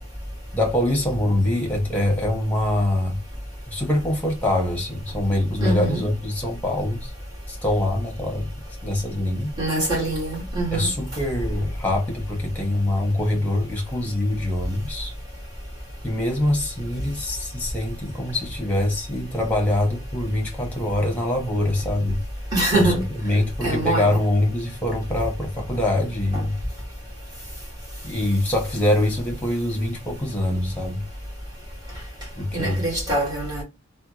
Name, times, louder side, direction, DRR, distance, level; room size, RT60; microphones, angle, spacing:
voice 1, 0.5-3.2 3.7-7.1 7.5-8.5 8.8-9.5 10.7-15.1 16.0-22.2 22.7-22.9 23.2-26.6 28.0-31.0 32.4-32.9, left 1 dB, 10° left, 1.2 m, -24 dB
voice 2, 5.6-6.1 9.6-10.9 22.5-23.1 23.6-24.2 26.3-26.4 32.5-33.6, right 1 dB, 20° right, 1.9 m, -24 dB
3.3 x 2.3 x 2.9 m
head